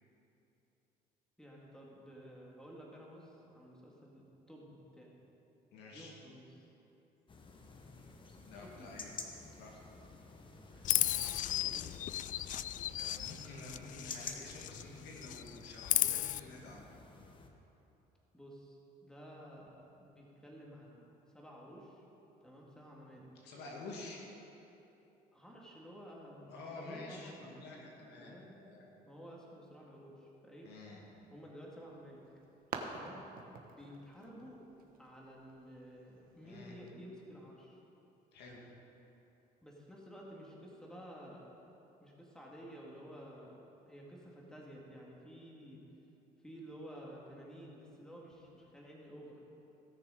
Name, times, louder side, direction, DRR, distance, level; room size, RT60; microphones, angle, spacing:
voice 1, 1.4-5.2 5.9-6.6 8.5-8.7 10.9-11.9 18.3-21.0 21.3-22.0 22.4-23.3 25.3-27.5 28.2-28.6 29.0-30.7 31.3-32.2 32.9-33.2 33.7-34.6 35.0-37.8 39.6-41.5 42.0-43.6 43.9-45.8 46.4-49.4, equal, 5° left, -4 dB, 2.3 m, -52 dB
voice 2, 5.7-6.1 8.5-9.1 9.6-9.7 10.7-10.9 12.8-16.9 23.4-24.2 26.5-28.8 30.6-31.0 36.4-36.7 38.3-38.6, left 3 dB, 80° left, -2 dB, 2.3 m, -49 dB
sound 1, 7.3-17.5, left 3 dB, 30° left, 1.2 m, -52 dB
Chirp tweet, 10.8-14.9 15.2-16.4, left 12 dB, 50° left, 0.4 m, -35 dB
sound 2, 31.8-36.9, right 5 dB, 60° right, 1.2 m, -49 dB
18.0 x 6.7 x 5.2 m, 3.0 s
cardioid pair, 110°, 17 cm